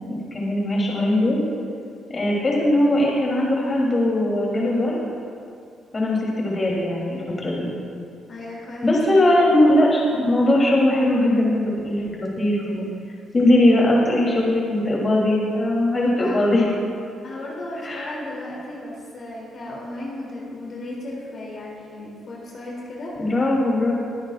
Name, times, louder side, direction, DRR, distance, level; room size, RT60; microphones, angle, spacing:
voice 1, 0.1-1.4 2.1-5.0 5.9-7.7 8.8-12.8 13.3-16.7 17.8-18.1 23.2-23.9, left 1 dB, 30° left, -4 dB, 3.3 m, -20 dB
voice 2, 8.3-9.4 16.2-16.7 17.2-23.1, left 1 dB, 55° left, -5 dB, 2.9 m, -35 dB
22.5 x 9.5 x 2.5 m, 2.4 s
cardioid pair, 90°, 0 cm